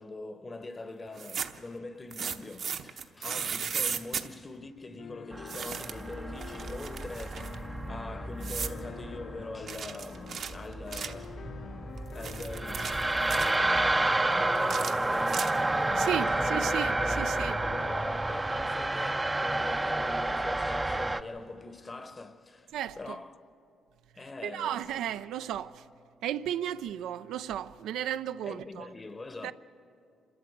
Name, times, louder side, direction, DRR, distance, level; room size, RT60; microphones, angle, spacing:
voice 1, 0.0-11.5 12.1-16.1 16.4-23.4 24.1-25.1 28.4-29.5, left 2 dB, 25° left, 1.0 m, -43 dB
sound 1, 1.1-1.7 2.1-4.3 5.5-6.1 6.4-7.6 8.4-8.8 9.7-11.2 12.0-13.5 14.5-15.8, right 7 dB, 60° right, 0.9 m, -36 dB
sound 2, 5.0-18.2, left 8 dB, 60° left, 0.4 m, -46 dB
sound 3, 5.3-21.2, right 2 dB, 15° right, 0.5 m, -30 dB
voice 2, 16.0-17.6 22.7-23.2 24.4-25.8 26.2-28.9 29.4-29.5, right 10 dB, 85° right, 0.4 m, -34 dB
26.5 x 13.0 x 7.9 m
cardioid pair, 90°, 0 cm